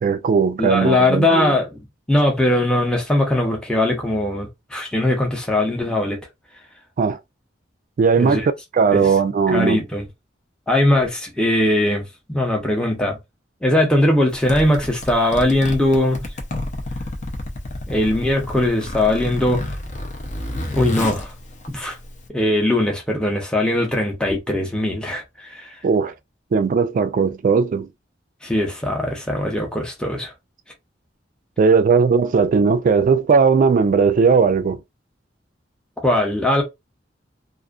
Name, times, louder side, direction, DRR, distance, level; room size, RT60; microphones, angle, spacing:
voice 1, 0.0-1.5 7.0-7.2 8.0-9.8 25.8-26.1 26.5-27.9 31.6-34.8, right 5 dB, 45° right, 0.3 m, -17 dB
voice 2, 0.6-6.2 8.2-8.4 8.9-9.1 9.5-10.0 10.7-13.2 13.6-16.2 17.9-19.7 20.7-21.3 21.7-22.0 22.3-25.7 28.4-30.3 36.0-36.6, left 1 dB, 5° left, 0.7 m, -20 dB
Zipper (clothing), 14.3-22.3, left 1 dB, 40° left, 0.6 m, -30 dB
2.5 x 2.4 x 2.4 m
head